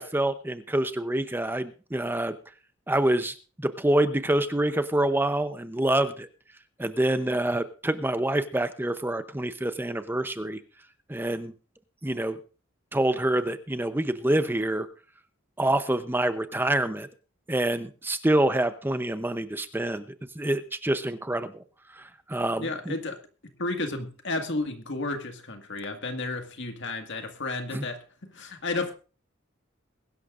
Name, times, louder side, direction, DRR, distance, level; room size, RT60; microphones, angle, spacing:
voice 1, 0.0-2.4 2.9-6.3 6.8-10.6 11.1-11.5 12.0-12.4 12.9-14.9 15.6-17.1 17.5-20.0 20.4-21.5 21.9-23.0 27.7-27.8, right 1 dB, 10° right, 0.7 m, -26 dB
voice 2, 22.6-23.2 23.6-28.9, left 2 dB, 65° left, 1.9 m, -32 dB
22.0 x 11.5 x 2.5 m
head